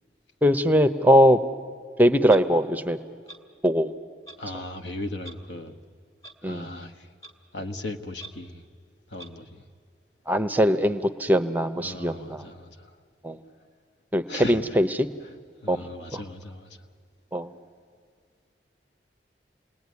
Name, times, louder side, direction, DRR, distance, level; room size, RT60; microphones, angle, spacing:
voice 1, 0.4-1.4 2.0-3.0 3.6-3.9 6.4-6.7 10.3-12.4 13.2-13.4 14.1-15.1 15.7-15.8 16.1-16.2 17.3-17.5, equal, 10° right, 10 dB, 0.7 m, -21 dB
Clock, 2.3-2.4 3.3-3.4 4.3-4.4 5.2-5.3 6.2-6.3 7.2-7.3 8.2-8.3 9.2-9.3, right 2 dB, 20° left, 1.7 m, -42 dB
voice 2, 4.4-5.7 6.4-7.1 7.5-8.6 9.1-9.6 11.7-12.9 14.3-14.8 15.2-15.3 15.6-16.8, left 1 dB, 80° left, 6 dB, 1.4 m, -37 dB
28.0 x 20.0 x 9.6 m, 2.2 s
head